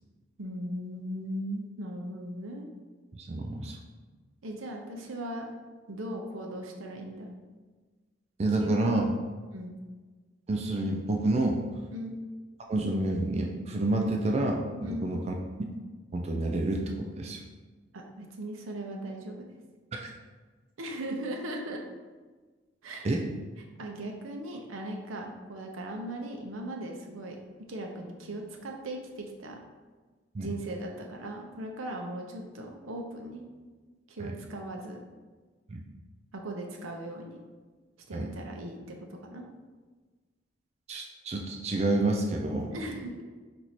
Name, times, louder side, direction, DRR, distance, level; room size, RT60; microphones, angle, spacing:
voice 1, 0.4-2.7 4.4-5.5 5.9-7.3 8.6-8.9 9.5-9.8 11.9-12.2 14.8-15.1 17.9-19.5 20.8-21.8 22.8-23.1 23.8-27.4 27.7-29.6 30.4-33.5 34.1-35.0 36.3-37.4 38.1-39.4 42.7-43.2, right 1 dB, 90° right, 1 dB, 0.7 m, -38 dB
voice 2, 3.1-3.8 8.4-9.1 10.5-11.6 12.7-15.3 16.1-17.4 19.9-20.1 23.0-23.2 30.3-30.5 34.2-34.4 35.7-35.8 38.1-38.3 40.9-42.7, right 2 dB, 30° right, 2 dB, 0.3 m, -29 dB
4.5 x 2.6 x 4.2 m, 1.3 s
head